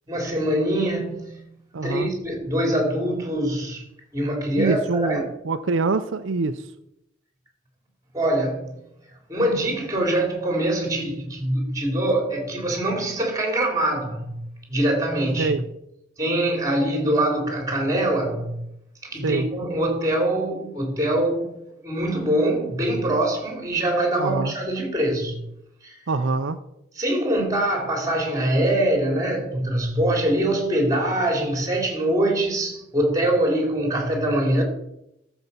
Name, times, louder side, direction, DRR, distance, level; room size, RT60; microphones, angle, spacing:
voice 1, 0.1-1.4 1.8-3.8 4.1-5.2 8.1-8.8 9.3-14.4 14.7-15.5 16.2-18.6 19.0-25.4 25.8-26.0 26.9-34.6, right 1 dB, 20° right, 3.0 m, -23 dB
voice 2, 1.7-2.1 4.6-6.7 15.4-15.6 19.2-19.5 24.2-24.5 26.1-26.6, right 3 dB, 80° right, 0.6 m, -24 dB
13.5 x 7.1 x 5.3 m
head